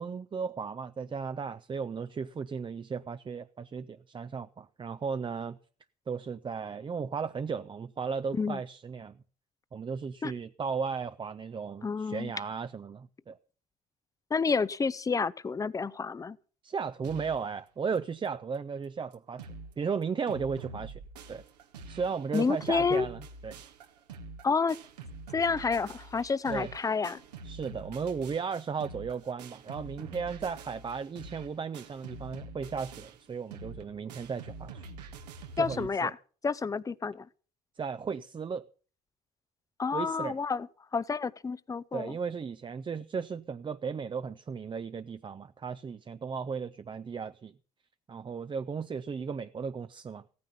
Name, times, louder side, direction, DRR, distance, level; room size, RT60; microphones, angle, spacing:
voice 1, 0.0-5.6 6.1-9.2 9.7-13.4 16.6-19.5 19.8-21.0 21.3-21.4 21.9-23.6 26.5-26.7 27.4-34.9 35.5-36.1 37.8-38.6 39.9-40.4 41.9-47.5 48.1-50.2, right 5 dB, 25° right, 0.6 m, -35 dB
voice 2, 11.8-12.3 14.3-16.4 22.3-23.1 24.4-24.8 25.3-27.2 35.6-36.2 36.4-37.3 39.8-40.7 40.9-42.2, left 5 dB, 15° left, 0.6 m, -29 dB
sound 1, 17.0-17.5 17.9-18.0 18.2-18.3 18.8-18.9 19.1-19.7 20.0-35.9, right 3 dB, 80° right, 1.6 m, -46 dB
16.0 x 9.6 x 5.6 m
hypercardioid pair, 60°, 21 cm